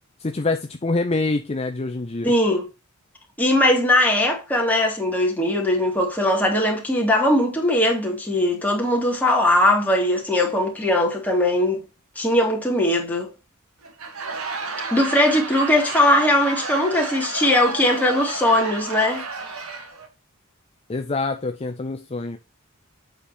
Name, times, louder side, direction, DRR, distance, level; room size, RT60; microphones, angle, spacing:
voice 1, 0.2-2.3 20.9-22.4, left 3 dB, 30° left, 0.6 m, -25 dB
voice 2, 2.2-2.7 3.4-11.8 12.2-13.3 14.9-19.3, left 1 dB, 10° left, 2.4 m, -20 dB
Laughter / Crowd, 13.8-20.1, right 4 dB, 85° right, 2.0 m, -32 dB
7.9 x 5.1 x 4.3 m
head